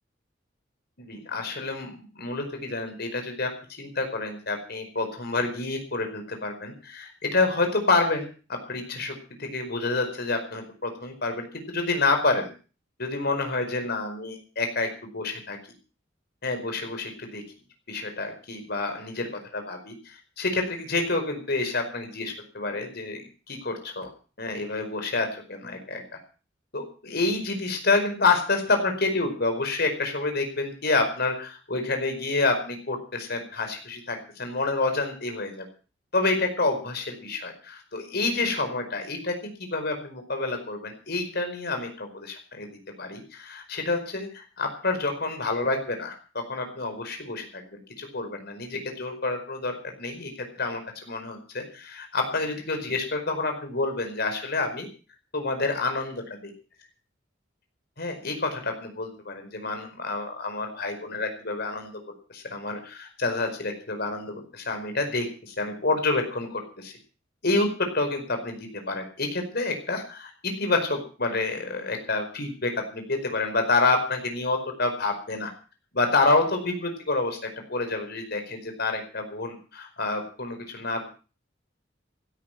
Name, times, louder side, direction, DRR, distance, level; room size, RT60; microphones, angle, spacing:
voice 1, 1.0-3.5 3.8-12.5 13.0-15.6 16.4-17.4 17.9-23.2 23.5-24.1 24.4-26.2 26.7-35.6 36.1-50.3 50.6-54.9 55.3-56.2 58.0-61.9 62.3-66.9 67.4-75.5 75.9-77.4 77.7-81.1, left 3 dB, 60° left, 5 dB, 5.0 m, -28 dB
16.5 x 13.0 x 5.9 m, 0.38 s
head